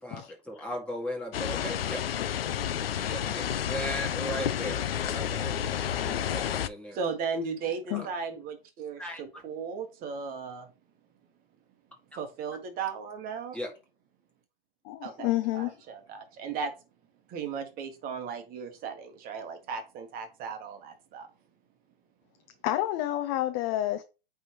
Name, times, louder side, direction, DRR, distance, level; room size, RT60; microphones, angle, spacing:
voice 1, 0.0-2.1 2.9-7.0 7.9-8.1 9.0-9.4 13.5-13.7, equal, 5° left, 1.8 m, -38 dB
sound 1, 1.3-6.7, left 9 dB, 80° left, 0.6 m, -30 dB
voice 2, 6.9-10.7 12.2-13.6 15.0-16.7 17.3-21.3, right 5 dB, 30° right, 1.4 m, -36 dB
voice 3, 14.8-15.8 22.6-24.0, left 14 dB, 35° left, 0.6 m, -29 dB
8.8 x 3.5 x 3.0 m
hypercardioid pair, 120°, 29 cm